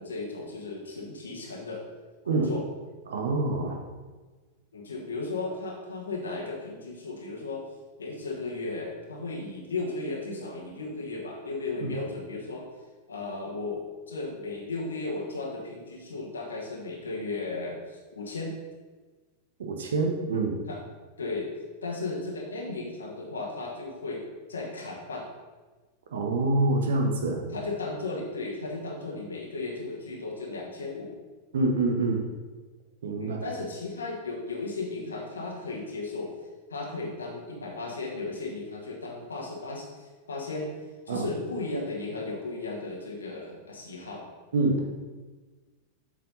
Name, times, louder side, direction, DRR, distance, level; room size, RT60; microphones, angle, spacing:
voice 1, 0.0-1.8 2.2-2.6 4.7-7.6 8.0-12.7 13.1-18.5 20.7-20.8 21.2-21.5 21.8-24.2 24.5-25.3 27.5-31.1 33.2-36.3 36.7-40.7 41.1-44.2, left 3 dB, 70° left, -1 dB, 1.5 m, -35 dB
voice 2, 3.1-3.8 11.8-11.9 19.6-20.6 26.1-27.4 31.5-32.2 33.0-33.4 41.1-41.3 44.5-44.9, right 2 dB, 65° right, 3 dB, 1.2 m, -26 dB
7.5 x 5.0 x 5.5 m, 1.3 s
figure-of-eight pair, 90°, 0 cm